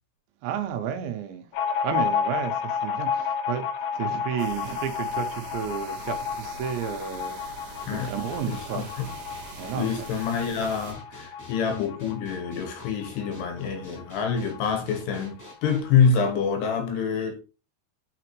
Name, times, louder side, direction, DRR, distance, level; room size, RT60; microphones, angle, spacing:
voice 1, 0.4-1.5 1.8-3.7 3.9-8.9 9.6-10.1, right 9 dB, 85° right, 3.1 m, -32 dB
sound 1, 1.5-14.7 14.9-15.0 15.3-16.1, left 7 dB, 90° left, 2.0 m, -32 dB
sound 2, 4.4-10.9, right 4 dB, 60° right, 2.2 m, -44 dB
sound 3, 7.8-15.8, left 1 dB, 10° left, 1.0 m, -47 dB
voice 2, 8.5-9.1 9.7-17.4, left 6 dB, 70° left, 3.0 m, -26 dB
6.8 x 5.9 x 3.0 m
omnidirectional pair, 5.2 m